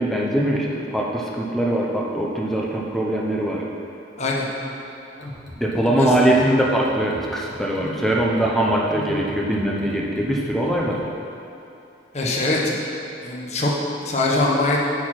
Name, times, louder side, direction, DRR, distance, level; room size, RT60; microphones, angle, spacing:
voice 1, 0.0-3.6 5.6-11.0, right 1 dB, ahead, -2 dB, 0.7 m, -22 dB
sound 1, 5.2-11.0, left 1 dB, 60° left, 1.2 m, -38 dB
voice 2, 12.1-12.8 13.2-13.7 14.0-14.8, left 2 dB, 35° left, -3 dB, 1.1 m, -22 dB
8.9 x 4.8 x 5.9 m, 2.8 s
head